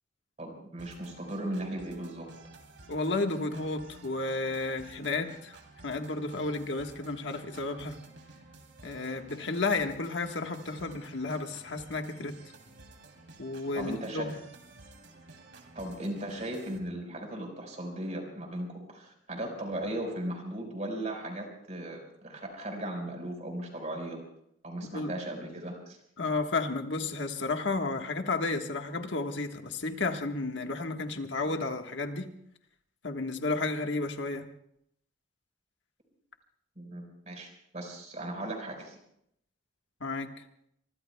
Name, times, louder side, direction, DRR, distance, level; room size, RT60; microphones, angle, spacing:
voice 1, 0.4-2.3 13.7-14.3 15.7-24.2 24.6-26.0 36.8-39.0, right 1 dB, 40° right, 3 dB, 4.7 m, -37 dB
sound 1, 0.8-16.8, right 2 dB, 75° right, 3.0 m, -53 dB
voice 2, 2.9-5.6 5.8-8.0 8.8-12.3 13.4-14.4 24.9-25.1 26.2-32.3 33.0-34.4 40.0-40.3, left 3 dB, 80° left, 5 dB, 1.4 m, -32 dB
25.0 x 24.0 x 2.3 m, 0.72 s
head